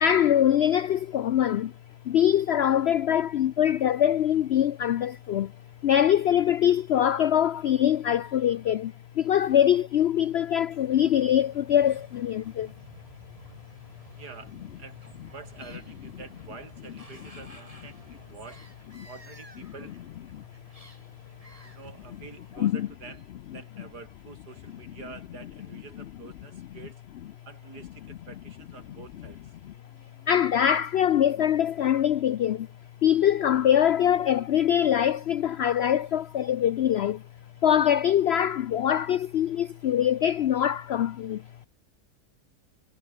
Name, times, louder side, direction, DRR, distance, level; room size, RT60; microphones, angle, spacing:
voice 1, 0.0-1.7 2.1-5.5 5.8-12.7 19.6-19.7 20.3-20.4 22.6-22.9 26.6-26.7 29.6-29.7 30.3-32.7 33.0-37.2 37.6-41.4, left 10 dB, 80° left, 0.5 m, -23 dB
sound 1, 10.6-22.7, right 1 dB, 20° right, 4.8 m, -52 dB
voice 2, 14.2-15.0 15.3-18.6 19.1-19.9 21.6-23.3 23.5-27.0 27.5-29.4, right 5 dB, 85° right, 3.2 m, -47 dB
omnidirectional pair, 1.7 m